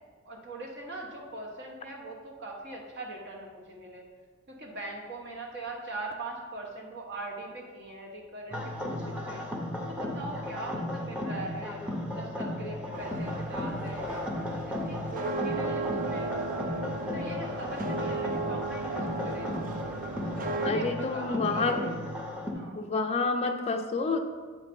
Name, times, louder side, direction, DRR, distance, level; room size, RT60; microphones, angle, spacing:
voice 1, 0.2-4.1 4.5-9.4 9.9-14.2 14.9-16.3 17.0-19.5 20.6-21.7 22.5-22.8, right 2 dB, 55° right, 0 dB, 1.2 m, -41 dB
sound 1, 8.5-22.5, left 1 dB, 5° right, 0.7 m, -35 dB
sound 2, 12.9-20.7, right 3 dB, 40° right, 0.4 m, -35 dB
voice 2, 20.6-21.9 22.7-24.3, left 3 dB, 30° left, 3 dB, 0.4 m, -28 dB
8.1 x 3.2 x 5.2 m, 1.5 s
head